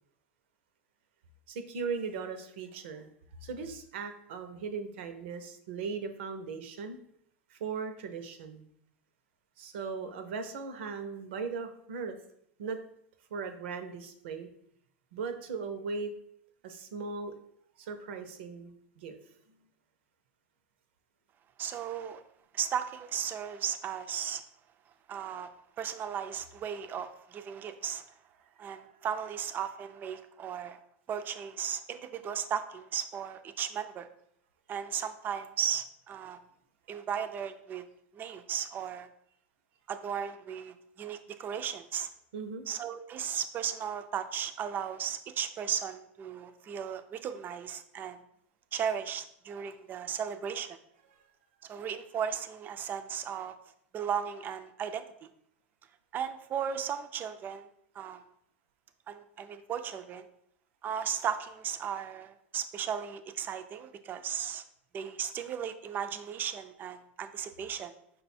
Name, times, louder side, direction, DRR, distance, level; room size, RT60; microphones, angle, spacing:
voice 1, 1.5-3.1 3.4-7.0 7.5-8.6 9.6-12.2 12.6-12.8 13.3-14.5 15.1-16.1 16.6-17.3 17.8-19.2 42.3-42.7 51.1-51.2, right 5 dB, 75° right, 8 dB, 0.6 m, -38 dB
voice 2, 21.6-22.2 22.5-24.4 25.1-25.5 25.8-28.1 28.6-30.8 31.1-34.1 34.7-36.4 36.9-37.8 38.1-39.1 39.9-42.1 42.7-48.2 48.7-50.8 51.6-53.5 53.9-55.0 56.1-57.7 58.0-58.2 59.1-60.3 60.8-64.6 64.9-67.9, right 8 dB, 30° right, 9 dB, 0.4 m, -36 dB
5.1 x 2.2 x 4.2 m, 0.70 s
supercardioid pair, 115°, 6 cm